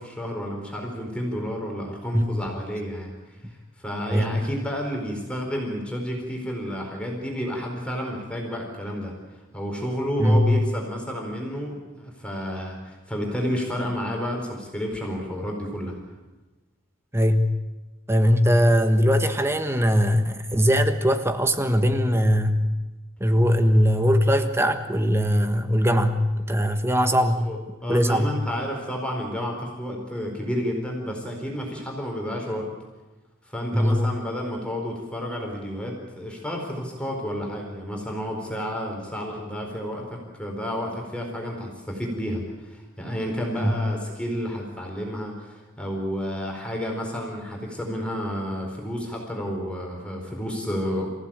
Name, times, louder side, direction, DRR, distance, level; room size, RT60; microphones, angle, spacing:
voice 1, 0.0-3.4 3.8-9.1 9.5-16.0 27.4-32.7 33.4-51.1, equal, 5° left, 0 dB, 4.4 m, -31 dB
voice 2, 10.2-10.5 17.1-17.5 18.1-22.6 23.2-27.5 27.9-28.3 33.7-34.1 43.6-43.7, equal, 10° right, 8 dB, 1.4 m, -20 dB
26.5 x 16.0 x 8.9 m, 1.2 s
head